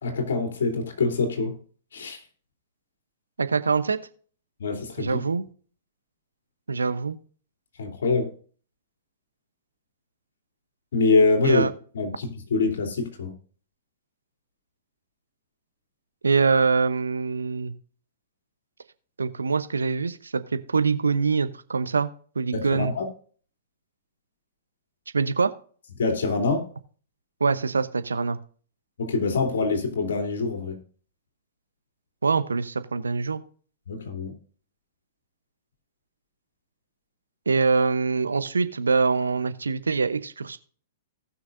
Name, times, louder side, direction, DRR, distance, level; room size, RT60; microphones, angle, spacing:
voice 1, 0.0-1.6 1.9-2.2 4.6-5.2 7.8-8.3 10.9-11.7 11.9-13.3 22.5-23.0 26.0-26.7 29.0-30.8 33.9-34.4, left 4 dB, 70° left, 4 dB, 2.9 m, -24 dB
voice 2, 3.4-4.0 5.0-5.4 6.7-7.2 11.4-11.7 16.2-17.7 19.2-22.1 22.4-22.9 25.1-25.5 27.4-28.4 32.2-33.4 37.5-40.6, right 4 dB, 85° right, 12 dB, 0.8 m, -24 dB
18.5 x 6.2 x 2.6 m, 0.43 s
figure-of-eight pair, 110°, 0 cm